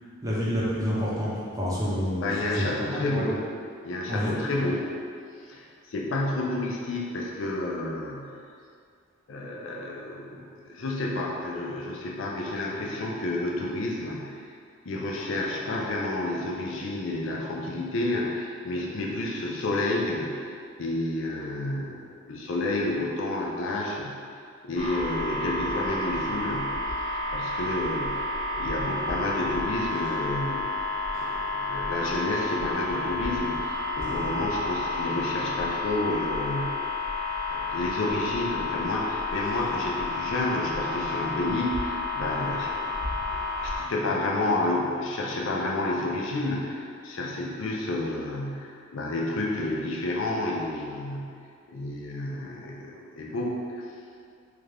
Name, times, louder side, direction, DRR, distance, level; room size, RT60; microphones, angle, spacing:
voice 1, 0.2-3.2 4.1-4.4, equal, 15° right, -7 dB, 0.6 m, -28 dB
voice 2, 2.2-3.4 3.8-4.9 5.4-8.3 9.3-14.4 14.8-20.5 20.8-24.1 24.6-26.9 27.3-30.7 31.1-36.9 37.5-42.9 43.3-51.3 51.7-53.8, left 2 dB, 70° left, -2 dB, 0.5 m, -30 dB
sound 1, 24.7-43.8, left 2 dB, 35° left, 0.8 m, -31 dB
3.3 x 2.5 x 3.3 m, 2.3 s
head